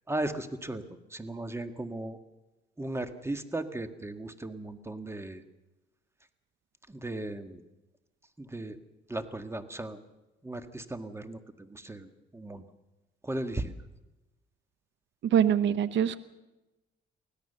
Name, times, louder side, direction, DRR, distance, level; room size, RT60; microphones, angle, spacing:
voice 1, 0.1-0.8 1.1-2.2 2.8-5.4 6.9-7.6 8.4-8.8 9.1-10.0 10.4-12.7 13.2-13.7, right 1 dB, 15° right, 8 dB, 1.7 m, -36 dB
voice 2, 15.2-16.2, right 9 dB, 70° right, 13 dB, 0.9 m, -24 dB
24.5 x 16.5 x 6.8 m, 1.0 s
cardioid pair, 90°, 20 cm